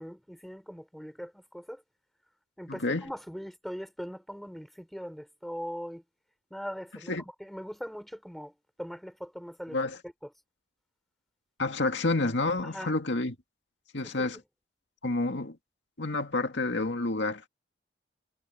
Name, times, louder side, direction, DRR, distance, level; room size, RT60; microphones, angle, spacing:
voice 1, 0.0-1.8 2.6-6.0 6.5-8.5 8.8-9.8 12.6-12.9 14.0-14.4, equal, ahead, 4.5 m, -41 dB
voice 2, 2.7-3.1 7.1-7.2 9.7-10.0 11.6-13.4 13.9-14.4 15.0-15.6 16.0-17.5, left 2 dB, 75° left, 2.1 m, -29 dB
head